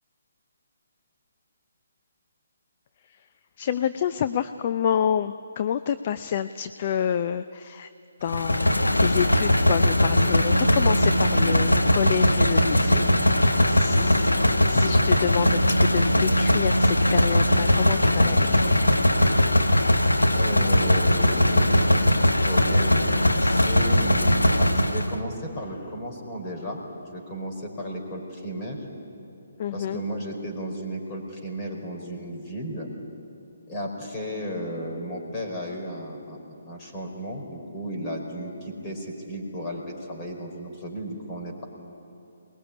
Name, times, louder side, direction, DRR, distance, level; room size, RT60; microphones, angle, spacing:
voice 1, 3.6-7.9 8.2-18.8 29.6-30.0, left 9 dB, 40° left, 11 dB, 0.6 m, -28 dB
sound 1, 8.3-25.2, left 1 dB, 90° left, 1.5 m, -20 dB
voice 2, 20.3-24.1 24.6-26.8 27.1-28.9 29.7-32.9 33.7-41.7, equal, 25° left, -1 dB, 5.1 m, -34 dB
23.5 x 20.5 x 9.9 m, 2.7 s
figure-of-eight pair, 140°, 0 cm